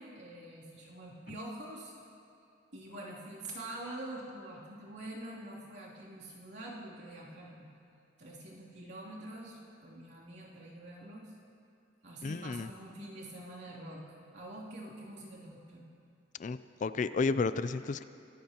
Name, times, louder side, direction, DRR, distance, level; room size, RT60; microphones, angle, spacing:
voice 1, 0.0-1.9 2.7-7.7 8.2-11.3 12.0-14.1 14.3-15.8, right 1 dB, 60° right, -6 dB, 3.0 m, -45 dB
voice 2, 12.2-12.7 16.4-18.0, left 4 dB, 40° left, 13 dB, 0.3 m, -32 dB
23.5 x 14.5 x 2.9 m, 2.5 s
head